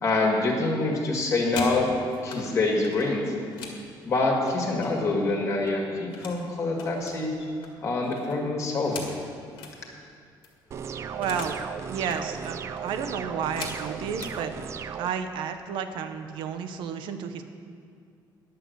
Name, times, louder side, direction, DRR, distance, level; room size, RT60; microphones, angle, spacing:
voice 1, 0.0-1.9 2.2-3.3 4.0-7.4 7.8-9.0, left 2 dB, 40° left, 0 dB, 1.8 m, -25 dB
sound 1, 1.2-2.4 2.8-5.2 5.5-6.4 6.7-9.8 10.1-10.2 10.4-11.6 11.9-12.2 12.8-14.4 15.2-15.4 15.7-16.1 16.4-16.9, left 4 dB, 85° left, 1.9 m, -42 dB
sound 2, 10.7-15.1, right 7 dB, 35° right, 0.4 m, -36 dB
voice 2, 11.1-11.5 11.9-14.5 15.0-17.4, right 7 dB, 80° right, 8 dB, 0.8 m, -32 dB
10.5 x 6.7 x 7.9 m, 2.3 s
cardioid pair, 180°, 8 cm